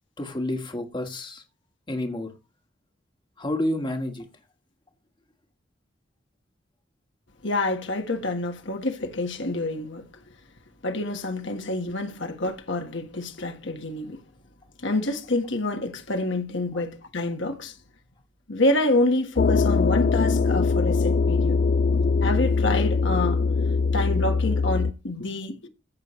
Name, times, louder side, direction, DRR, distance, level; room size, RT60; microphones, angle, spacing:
voice 1, 0.2-1.4 1.9-2.3 3.4-4.2, left 1 dB, 25° left, 1.5 m, -29 dB
voice 2, 7.4-10.1 10.8-14.2 14.8-17.8 18.5-21.6 21.9-23.4 23.9-25.7, left 2 dB, 65° left, 1.5 m, -27 dB
sound 1, 19.4-24.9, left 4 dB, 50° left, 0.4 m, -22 dB
15.0 x 6.5 x 3.1 m
head